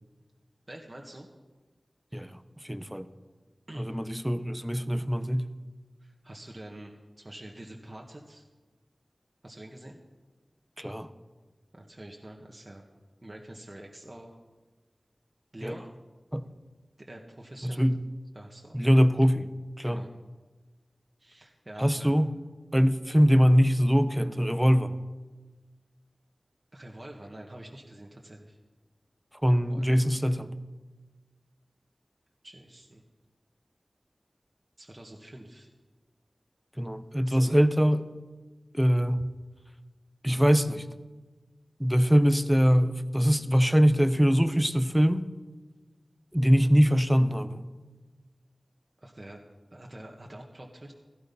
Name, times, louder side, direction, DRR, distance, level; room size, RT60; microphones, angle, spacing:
voice 1, 0.7-1.3 2.1-2.3 3.7-4.3 6.0-8.4 9.4-10.0 11.7-12.8 13.2-14.4 15.5-15.9 17.0-17.8 18.3-18.8 19.8-20.1 21.2-22.2 26.7-28.6 29.7-29.9 32.4-33.0 34.8-35.7 37.3-37.6 49.0-49.4 49.7-50.9, right 1 dB, 35° right, 0 dB, 1.8 m, -46 dB
voice 2, 2.7-3.1 3.8-5.5 10.8-11.1 15.6-15.7 16.3-16.4 17.6-18.0 18.7-19.5 19.8-20.0 21.8-22.3 22.7-24.9 29.4-30.5 36.8-38.1 38.7-39.3 40.2-40.8 41.8-45.3 46.3-47.6, equal, 5° right, 11 dB, 1.0 m, -23 dB
17.0 x 14.0 x 5.6 m, 1.3 s
wide cardioid pair, 60°, 0 cm